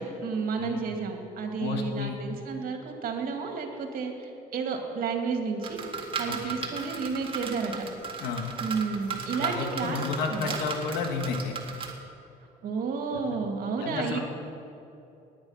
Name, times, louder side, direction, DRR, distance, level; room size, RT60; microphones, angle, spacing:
voice 1, 0.0-5.8 6.2-7.8 8.6-10.0 10.3-10.6 12.6-14.2, right 5 dB, 55° right, 3 dB, 2.4 m, -31 dB
voice 2, 1.6-2.2 6.5-6.6 8.2-8.5 9.3-11.5 13.1-13.2 13.8-14.2, left 5 dB, 85° left, 4 dB, 1.9 m, -31 dB
sound 1, 5.6-11.9, right 5 dB, 30° right, 2.1 m, -36 dB
18.0 x 9.9 x 5.8 m, 2.7 s
cardioid pair, 110°, 17 cm